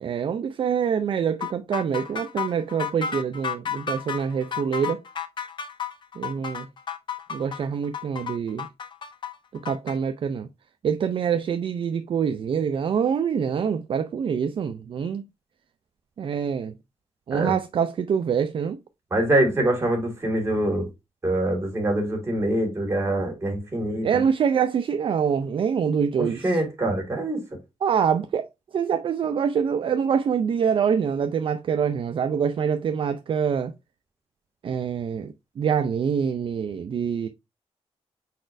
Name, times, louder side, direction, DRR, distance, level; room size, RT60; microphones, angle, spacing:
voice 1, 0.0-5.0 6.2-6.7 7.3-8.7 9.6-10.5 10.8-15.2 16.2-16.8 17.3-18.8 24.0-26.6 27.8-28.5 28.7-33.7 34.6-37.3, right 7 dB, 50° right, 0.4 m, -25 dB
sound 1, 1.4-10.0, left 7 dB, 45° left, 0.6 m, -32 dB
voice 2, 19.1-20.9 21.2-24.2 26.2-27.4, right 1 dB, 25° right, 1.9 m, -24 dB
4.9 x 4.2 x 2.5 m
wide cardioid pair, 145°, 11 cm